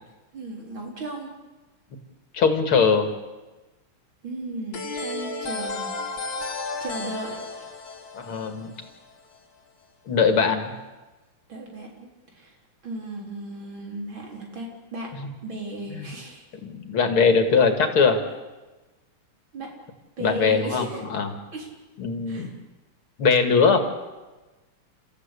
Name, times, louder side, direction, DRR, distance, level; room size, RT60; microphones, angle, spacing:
voice 1, 0.3-1.3 4.2-6.0 6.8-7.4 11.5-12.5 12.8-15.1 15.4-16.4 19.5-19.7 20.2-21.1 21.5-21.7 22.3-22.5, right 2 dB, 65° right, 0 dB, 4.8 m, -35 dB
voice 2, 2.3-3.1 8.1-8.7 10.1-10.7 15.9-16.1 16.6-18.2 20.2-21.3 22.0-22.5 23.2-23.8, left 5 dB, 80° left, 6 dB, 2.9 m, -21 dB
sound 1, 4.7-9.4, left 3 dB, 60° left, 2.6 m, -33 dB
30.0 x 14.5 x 8.3 m, 1.2 s
omnidirectional pair, 2.3 m